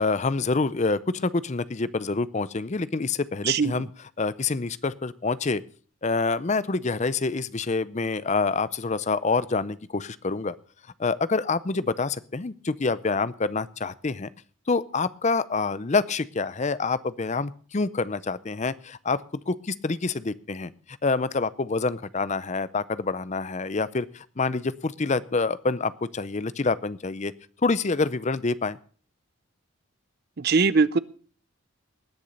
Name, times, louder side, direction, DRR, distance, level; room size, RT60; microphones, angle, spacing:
voice 1, 0.0-3.9 4.2-5.6 6.0-10.5 11.0-14.3 14.7-20.7 21.0-27.3 27.6-28.8, left 3 dB, 30° left, 17 dB, 0.5 m, -27 dB
voice 2, 30.4-31.0, right 4 dB, 45° right, 18 dB, 0.5 m, -21 dB
19.5 x 7.1 x 6.4 m, 0.43 s
head